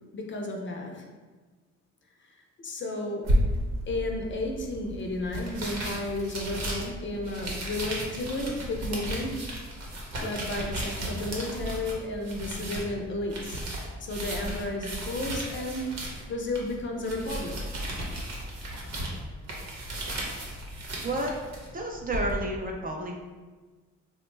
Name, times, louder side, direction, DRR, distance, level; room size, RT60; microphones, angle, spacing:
voice 1, 0.1-1.1 2.2-3.3 3.9-9.4 10.2-13.6 14.0-16.0 16.3-17.6, left 2 dB, 40° left, 1 dB, 0.5 m, -33 dB
sound 1, 3.2-22.3, right 1 dB, 60° right, 0.9 m, -34 dB
voice 2, 21.7-23.1, right 1 dB, 30° right, 0 dB, 0.5 m, -30 dB
3.3 x 2.1 x 3.1 m, 1.3 s
cardioid pair, 90°, 30 cm